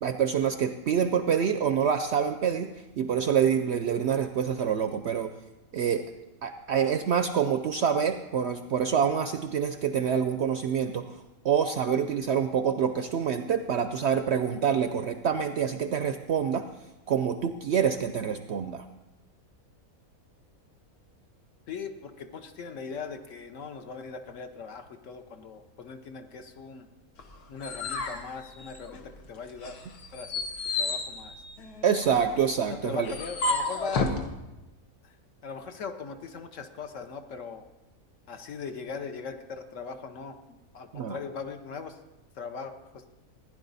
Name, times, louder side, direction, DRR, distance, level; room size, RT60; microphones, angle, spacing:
voice 1, 0.0-5.3 5.7-6.1 6.4-11.1 11.4-16.7 17.1-18.8 31.8-33.1 40.9-41.2, right 7 dB, 65° right, 9 dB, 0.7 m, -26 dB
voice 2, 21.7-26.9 27.5-29.8 30.1-30.3 30.7-31.4 32.7-34.2 35.0-35.2 35.4-37.6 38.3-42.0 42.3-43.1, left 5 dB, 60° left, 7 dB, 1.1 m, -40 dB
sound 1, 27.2-29.2 29.6-34.2, left 3 dB, 85° left, 1.7 m, -32 dB
15.5 x 10.0 x 4.0 m, 1.0 s
omnidirectional pair, 1.6 m